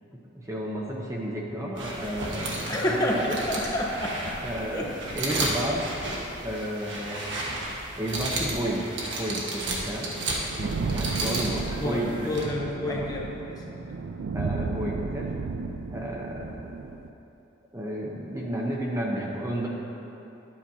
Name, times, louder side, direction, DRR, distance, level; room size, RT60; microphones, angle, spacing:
voice 1, 0.3-3.4 4.4-6.0 6.4-7.3 8.0-8.9 9.2-10.2 10.6-12.4 12.9-13.1 14.3-15.4 15.9-16.7 17.7-19.7, right 1 dB, 15° right, -3 dB, 0.7 m, -32 dB
sound 1, 1.8-12.4, right 2 dB, 70° right, 1.4 m, -33 dB
voice 2, 2.6-4.4 4.7-4.9 11.8-14.0, left 1 dB, 20° left, -2 dB, 0.8 m, -29 dB
sound 2, 10.2-17.1, right 4 dB, 90° right, 0.4 m, -33 dB
12.0 x 8.6 x 2.7 m, 3.0 s
head